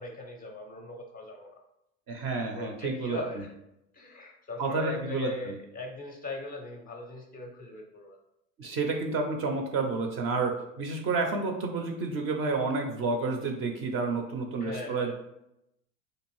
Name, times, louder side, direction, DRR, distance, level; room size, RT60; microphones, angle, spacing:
voice 1, 0.0-1.5 2.5-3.5 3.9-8.2 14.6-15.1, left 2 dB, 20° left, 1 dB, 0.5 m, -39 dB
voice 2, 2.1-3.2 4.6-5.6 8.6-15.1, right 3 dB, 35° right, 3 dB, 0.4 m, -30 dB
2.6 x 2.4 x 3.0 m, 0.83 s
hypercardioid pair, 90°, 40 cm